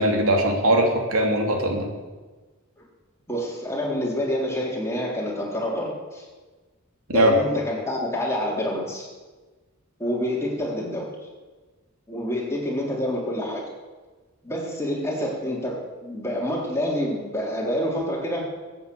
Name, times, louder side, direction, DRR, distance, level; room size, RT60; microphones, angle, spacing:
voice 1, 0.0-1.9 7.1-7.3, right 1 dB, 75° right, 2 dB, 2.9 m, -20 dB
voice 2, 3.3-6.2 7.1-9.1 10.0-11.1 12.1-13.6 14.4-18.5, left 1 dB, 15° left, -3 dB, 3.6 m, -27 dB
22.0 x 9.1 x 6.9 m, 1.3 s
head